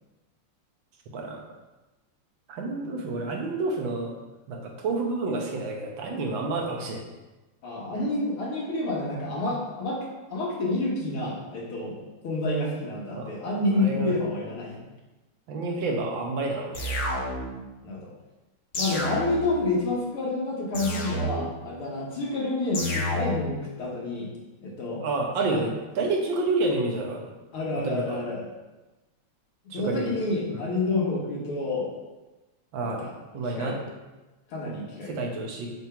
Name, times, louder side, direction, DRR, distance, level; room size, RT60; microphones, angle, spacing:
voice 1, 2.5-4.1 4.5-7.0 13.1-13.3 13.8-14.1 15.5-17.0 25.0-27.3 27.8-28.2 29.7-30.1 30.5-30.6 32.7-33.0 33.3-33.8 35.1-35.7, right 2 dB, 65° right, 1 dB, 1.6 m, -29 dB
voice 2, 7.6-10.1 10.3-12.0 12.2-14.8 17.8-18.1 18.8-24.3 24.6-25.0 25.5-25.7 27.5-28.5 29.7-31.9 32.8-33.1 33.4-33.8 34.5-35.3, left 2 dB, 75° left, -4 dB, 2.5 m, -29 dB
sound 1, 16.7-17.6 18.7-19.6 20.7-21.6 22.7-23.6, equal, 45° left, 1.1 m, -30 dB
6.0 x 3.7 x 5.7 m, 1.1 s
omnidirectional pair, 2.4 m